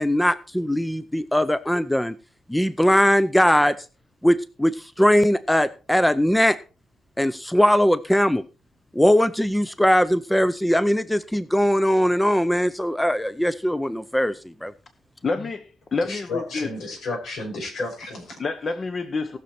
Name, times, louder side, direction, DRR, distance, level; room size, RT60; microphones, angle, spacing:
voice 1, 0.0-2.2 2.5-3.7 4.2-6.6 7.2-8.4 8.9-14.7, equal, 5° left, 14 dB, 0.5 m, -20 dB
voice 2, 15.2-15.6 15.9-16.7 18.4-19.4, left 4 dB, 35° left, 9 dB, 0.9 m, -27 dB
voice 3, 16.0-18.4, left 3 dB, 75° left, 2 dB, 5.7 m, -33 dB
18.5 x 6.5 x 4.3 m, 0.34 s
wide cardioid pair, 145°, 0 cm